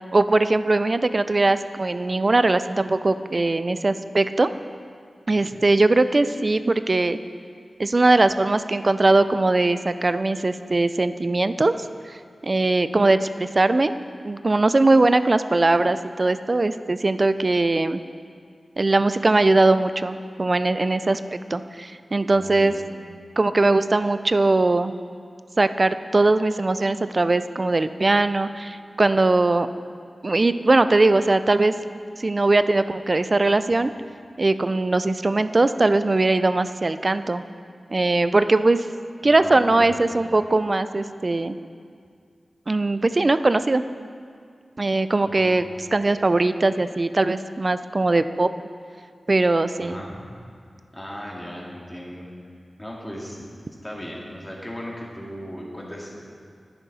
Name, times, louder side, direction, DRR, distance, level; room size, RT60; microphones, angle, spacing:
voice 1, 0.1-4.5 5.3-7.2 7.8-11.7 12.4-13.9 14.2-18.0 18.8-21.2 21.5-22.7 23.4-25.0 25.6-29.7 30.2-31.7 32.2-33.9 34.4-37.4 37.9-38.9 39.2-41.6 42.7-43.8 44.8-48.5 49.3-50.0, right 2 dB, 40° right, 12 dB, 0.3 m, -20 dB
voice 2, 22.3-22.9 39.2-40.0 45.2-45.5 49.8-50.2 50.9-52.3 52.8-53.4 53.8-56.2, equal, 10° left, -4 dB, 2.0 m, -37 dB
10.5 x 10.0 x 4.1 m, 2.2 s
wide cardioid pair, 80°, 0 cm